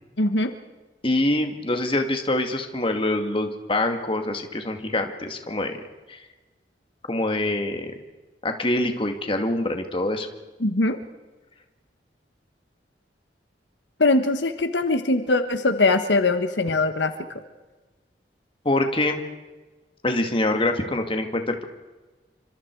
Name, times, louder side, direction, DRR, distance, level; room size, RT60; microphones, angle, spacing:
voice 1, 0.2-0.5 10.6-11.0 14.0-17.1, left 2 dB, 80° left, 8 dB, 1.4 m, -21 dB
voice 2, 1.0-5.8 6.1-6.2 7.1-7.9 8.4-10.3 18.6-19.2 20.0-21.7, left 1 dB, 30° left, 5 dB, 2.2 m, -25 dB
29.5 x 26.0 x 4.8 m, 1.2 s
head